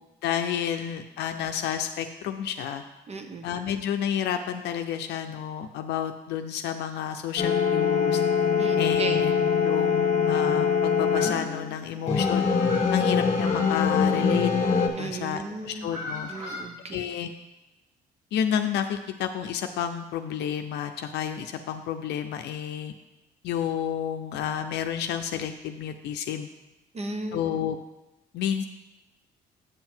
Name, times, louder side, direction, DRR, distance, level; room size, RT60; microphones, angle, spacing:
voice 1, 0.2-2.8 3.4-8.2 8.8-12.5 12.9-14.5 15.0-16.3 16.8-17.3 18.3-22.9 23.4-26.5 27.3-27.8 28.3-28.6, left 9 dB, 75° left, 6 dB, 0.6 m, -30 dB
voice 2, 3.1-3.5 8.6-9.3 15.0-15.9 16.3-17.0 26.9-27.4, right 3 dB, 35° right, 6 dB, 0.9 m, -35 dB
sound 1, 7.4-11.8 12.1-14.9, left 6 dB, 40° left, 1.2 m, -23 dB
sound 2, 7.8-8.5 8.8-8.9 9.3-9.4 9.6-10.6 11.0-12.1 12.3-14.9 15.5-16.6, left 2 dB, 85° right, 2.5 m, -40 dB
8.0 x 5.7 x 4.5 m, 0.97 s
supercardioid pair, 75°, 18 cm